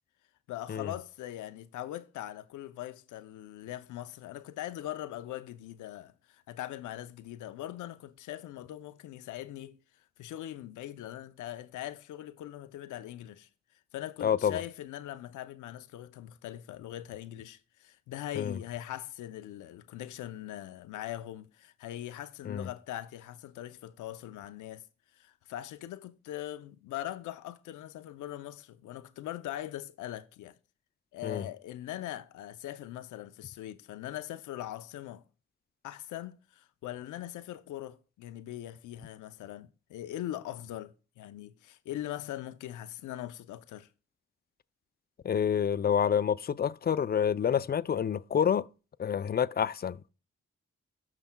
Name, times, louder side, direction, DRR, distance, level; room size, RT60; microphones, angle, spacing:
voice 1, 0.5-9.8 10.2-13.5 13.9-24.8 25.2-30.5 31.1-35.2 35.8-43.9, left 13 dB, 85° left, 0.5 m, -41 dB
voice 2, 14.2-14.6 18.4-18.6 22.5-22.7 31.2-31.4 45.2-48.7 49.0-50.0, left 8 dB, 35° left, 0.4 m, -28 dB
15.5 x 5.9 x 2.2 m
supercardioid pair, 45°, 29 cm